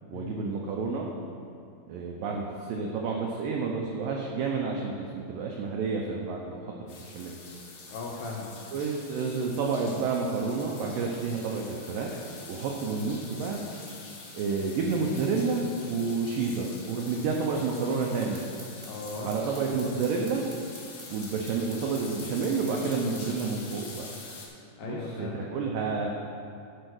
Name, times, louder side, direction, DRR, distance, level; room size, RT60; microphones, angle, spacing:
voice 1, 0.1-1.1 1.9-6.6 6.9-7.4 8.7-13.6 14.3-18.4 19.2-20.4 21.1-24.1 24.8-26.1, right 4 dB, 90° right, 0 dB, 1.9 m, -30 dB
sound 1, 6.9-24.5, left 3 dB, 60° left, 2.0 m, -45 dB
voice 2, 7.9-8.6 12.9-13.1 18.9-19.3 24.8-25.5, left 4 dB, 80° left, -2 dB, 2.1 m, -37 dB
sound 2, 18.2-23.5, equal, 20° right, 0.5 m, -48 dB
12.0 x 4.7 x 6.1 m, 2.4 s
omnidirectional pair, 4.9 m